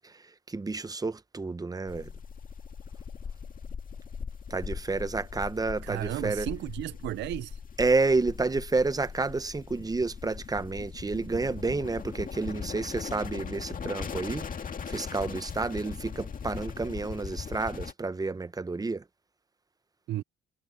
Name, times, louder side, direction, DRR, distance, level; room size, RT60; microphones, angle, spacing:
voice 1, 0.5-2.1 4.5-6.5 7.8-14.5 14.9-19.0, right 3 dB, 20° right, 0.8 m, -30 dB
sound 1, 1.9-17.9, left 6 dB, 45° left, 2.1 m, -39 dB
voice 2, 5.8-7.6 20.1-20.2, right 14 dB, 65° right, 0.4 m, -34 dB
cardioid pair, 90°, 20 cm